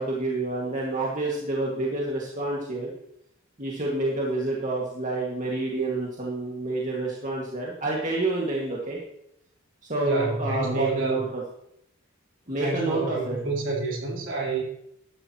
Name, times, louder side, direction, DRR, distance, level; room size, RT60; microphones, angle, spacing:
voice 1, 0.0-2.9 3.6-9.0 9.9-11.4 12.5-13.4, right 2 dB, 35° right, -4 dB, 2.1 m, -28 dB
voice 2, 10.0-11.3 12.6-14.6, right 3 dB, 60° right, -2 dB, 3.8 m, -28 dB
13.0 x 12.5 x 3.0 m, 0.76 s
head